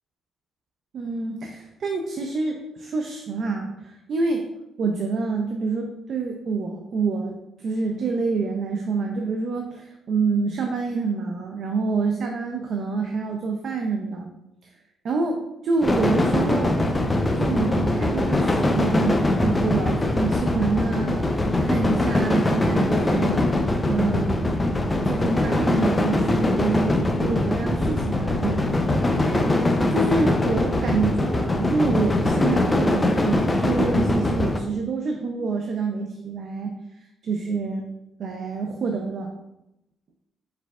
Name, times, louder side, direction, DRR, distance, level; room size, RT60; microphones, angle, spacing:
voice 1, 0.9-4.5 4.8-14.3 14.6-14.7 15.0-16.8 17.4-23.5 23.8-24.5 25.0-28.6 29.2-29.4 29.9-36.7 37.2-37.8 38.2-39.3, right 4 dB, 60° right, 3 dB, 0.5 m, -27 dB
sound 1, 15.8-34.6, left 1 dB, 20° left, 0.5 m, -22 dB
4.8 x 4.5 x 2.3 m, 0.88 s
cardioid pair, 90°, 0 cm